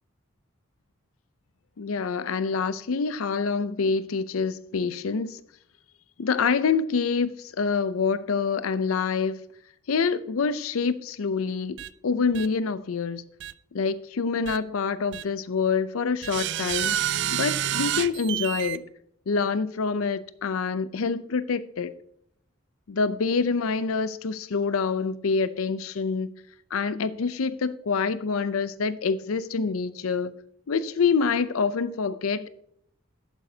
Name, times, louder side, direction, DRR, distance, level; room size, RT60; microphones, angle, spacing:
voice 1, 1.8-5.4 6.2-9.4 9.9-11.8 12.0-13.2 13.7-17.0 17.3-18.8 19.3-21.9 22.9-26.3 26.7-30.3 30.7-32.5, left 5 dB, 85° left, 0.5 m, -26 dB
sound 1, 11.8-11.9 12.3-12.5 13.4-13.5 14.5-14.6 15.1-15.2 16.2-18.8, right 11 dB, 55° right, 0.4 m, -28 dB
11.0 x 8.9 x 2.8 m
head